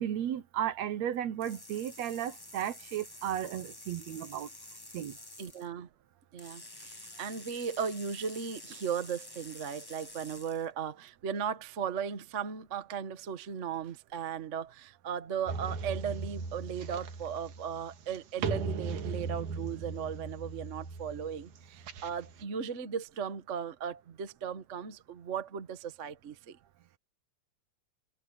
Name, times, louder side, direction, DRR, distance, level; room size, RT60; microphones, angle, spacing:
voice 1, 0.0-4.5 4.9-5.1, right 10 dB, 70° right, 2.1 m, -34 dB
sound 1, 1.4-5.7 6.4-10.7, left 2 dB, 35° left, 0.3 m, -49 dB
voice 2, 5.4-5.9 6.3-26.6, right 7 dB, 45° right, 1.0 m, -37 dB
sound 2, 15.5-22.4, right 4 dB, 85° right, 3.2 m, -38 dB
omnidirectional pair, 3.4 m